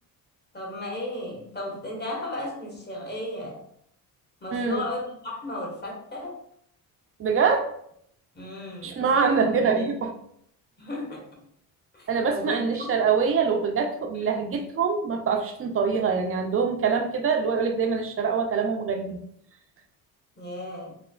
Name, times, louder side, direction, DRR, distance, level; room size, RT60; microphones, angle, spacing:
voice 1, 0.5-3.6 4.4-6.4 8.3-9.9 10.8-11.4 11.9-13.0 14.1-14.4 20.4-20.9, left 1 dB, 25° left, -2 dB, 1.1 m, -35 dB
voice 2, 4.5-4.8 7.2-7.7 8.8-10.1 12.1-19.2, right 5 dB, 35° right, 4 dB, 0.5 m, -24 dB
3.2 x 2.1 x 2.3 m, 0.70 s
supercardioid pair, 60°, 42 cm